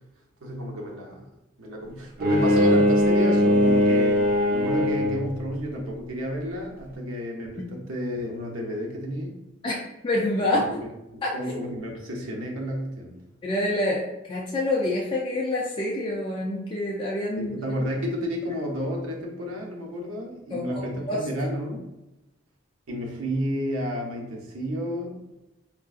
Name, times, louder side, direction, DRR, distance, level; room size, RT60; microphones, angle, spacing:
voice 1, 0.4-1.3 1.6-9.3 10.5-13.2 17.4-21.8 22.9-25.2, equal, 90° right, 0 dB, 0.7 m, -31 dB
Bowed string instrument, 2.2-5.4, left 1 dB, 45° right, 0.4 m, -20 dB
voice 2, 10.0-10.6 11.2-11.3 13.4-14.0 14.3-17.6 20.5-21.2, left 1 dB, 25° left, -4 dB, 0.3 m, -26 dB
3.6 x 2.5 x 2.4 m, 0.95 s
head